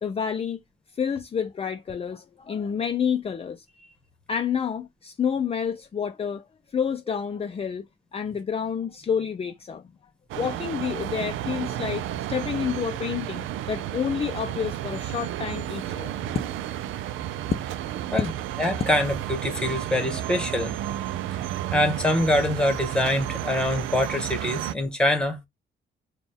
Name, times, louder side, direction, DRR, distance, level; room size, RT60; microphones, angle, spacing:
voice 1, 0.0-0.6 0.9-3.9 4.3-7.8 8.1-9.9 10.3-16.1, left 7 dB, 30° left, 0.5 m, -29 dB
sound 1, 10.3-24.7, right 12 dB, 80° right, 0.4 m, -32 dB
voice 2, 18.6-20.7 21.7-25.5, left 1 dB, 5° left, 1.3 m, -24 dB
4.1 x 2.3 x 3.4 m
cardioid pair, 90°, 20 cm